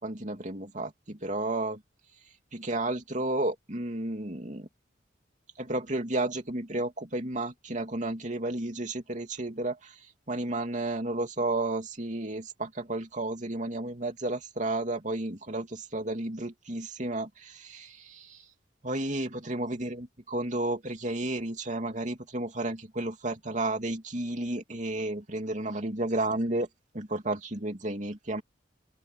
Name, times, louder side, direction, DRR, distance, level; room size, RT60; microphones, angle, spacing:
voice 1, 0.0-1.8 2.5-4.7 5.6-10.0 10.3-18.4 18.8-26.7 26.9-28.4, right 2 dB, 45° right, 2.9 m, -32 dB
open air
head